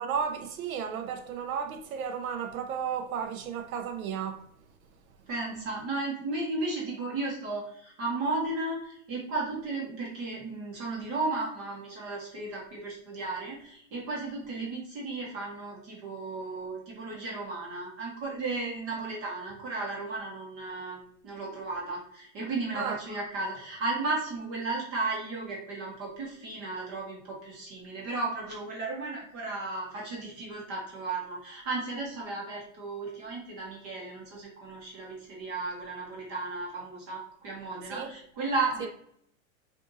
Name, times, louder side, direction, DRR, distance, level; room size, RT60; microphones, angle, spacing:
voice 1, 0.0-4.4 22.7-23.0 37.9-38.1 38.8-38.9, right 7 dB, 85° right, 0.7 m, -33 dB
voice 2, 5.3-38.9, right 3 dB, 35° right, 1.2 m, -34 dB
4.6 x 2.6 x 2.6 m
supercardioid pair, 145°, 41 cm